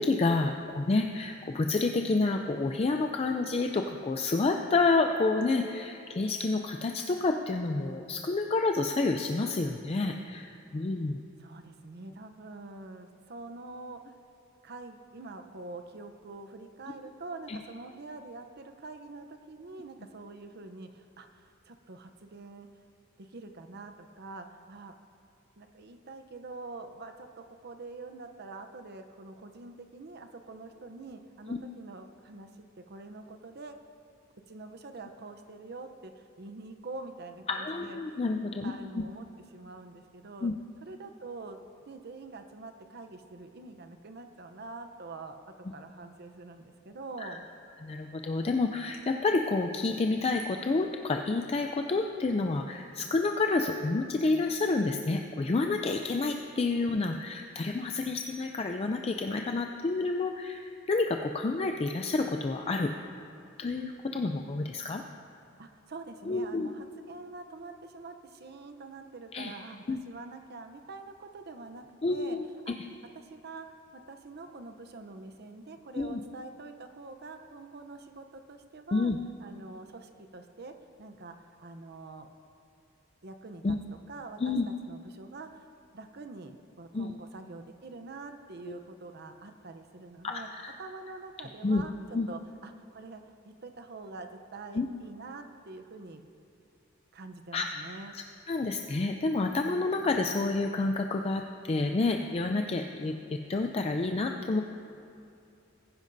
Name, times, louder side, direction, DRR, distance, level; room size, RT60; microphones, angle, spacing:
voice 1, 0.0-11.2 17.5-17.6 31.5-31.6 37.6-39.0 40.4-40.5 47.2-47.4 47.8-62.9 63.6-65.0 66.3-66.7 69.3-69.5 69.9-70.0 72.0-72.4 76.0-76.2 78.9-79.2 83.6-83.8 84.4-84.7 86.9-87.1 90.2-90.7 91.6-91.8 92.1-92.3 94.7-94.9 97.5-97.7 98.1-104.6, left 3 dB, 30° left, 4 dB, 0.4 m, -29 dB
voice 2, 11.4-14.1 14.6-22.7 23.2-24.9 25.6-33.8 34.5-38.2 38.6-39.3 39.5-40.5 40.8-41.6 41.9-47.4 65.6-72.4 72.6-72.7 73.1-73.7 73.9-79.1 79.4-80.7 81.0-82.3 83.2-83.8 84.1-85.7 85.9-90.5 90.8-96.2 97.1-98.2, right 3 dB, 55° right, 7 dB, 0.7 m, -45 dB
20.5 x 10.0 x 2.7 m, 2.6 s
head